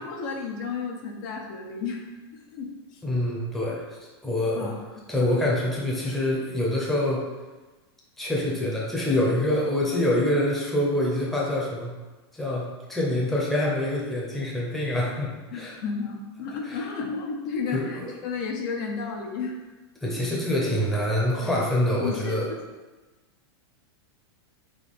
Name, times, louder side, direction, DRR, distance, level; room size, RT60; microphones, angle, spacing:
voice 1, 0.0-2.0 2.5-3.0 4.5-4.8 15.5-19.6 20.2-20.3 21.4-21.5 22.0-22.6, left 5 dB, 50° left, 1 dB, 0.6 m, -32 dB
voice 2, 3.0-3.8 4.2-4.8 5.1-7.2 8.2-11.9 12.3-15.8 16.6-16.8 17.7-18.1 20.0-22.5, left 1 dB, ahead, -5 dB, 0.7 m, -25 dB
3.7 x 2.7 x 4.1 m, 1.2 s
supercardioid pair, 150°, 14 cm